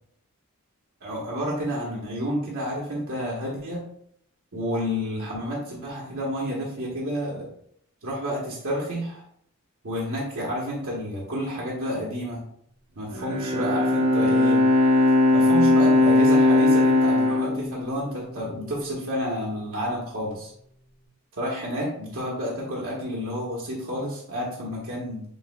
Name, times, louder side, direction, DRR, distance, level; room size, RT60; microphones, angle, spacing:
voice 1, 1.0-3.8 4.5-7.5 8.0-9.2 9.8-12.4 13.0-14.6 15.3-20.5 21.4-25.2, equal, 70° right, -5 dB, 1.0 m, -30 dB
Bowed string instrument, 13.1-18.5, left 2 dB, 85° right, 1.6 m, -19 dB
6.5 x 2.8 x 2.2 m, 0.68 s
head